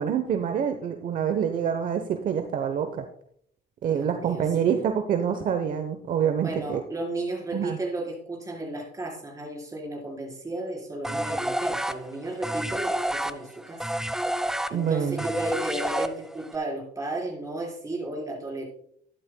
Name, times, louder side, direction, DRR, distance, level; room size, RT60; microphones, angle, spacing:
voice 1, 0.0-3.1 3.8-6.8 7.5-7.8 14.7-15.2, right 8 dB, 55° right, 7 dB, 0.9 m, -26 dB
voice 2, 3.9-4.8 6.4-13.8 14.7-18.6, right 2 dB, 20° right, -1 dB, 4.4 m, -34 dB
sound 1, 11.0-16.5, right 1 dB, 5° right, 0.5 m, -29 dB
12.5 x 11.0 x 2.3 m, 0.64 s
cardioid pair, 110°, 17 cm